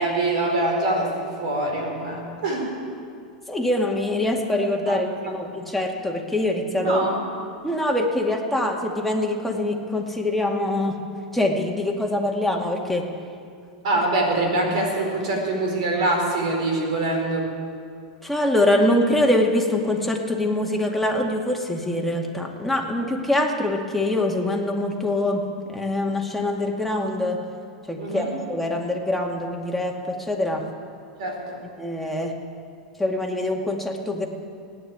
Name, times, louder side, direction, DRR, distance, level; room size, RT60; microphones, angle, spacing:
voice 1, 0.0-2.7 4.9-5.3 6.8-7.2 13.8-17.5 28.0-28.4 31.2-31.6, right 2 dB, 70° right, 1 dB, 4.4 m, -24 dB
voice 2, 3.5-7.0 7.6-11.0 11.3-13.0 18.2-25.4 25.7-27.4 27.9-30.6 31.8-32.3 33.0-34.3, left 1 dB, 5° left, 0 dB, 2.2 m, -24 dB
16.5 x 9.8 x 8.8 m, 2.4 s
hypercardioid pair, 100°, 4 cm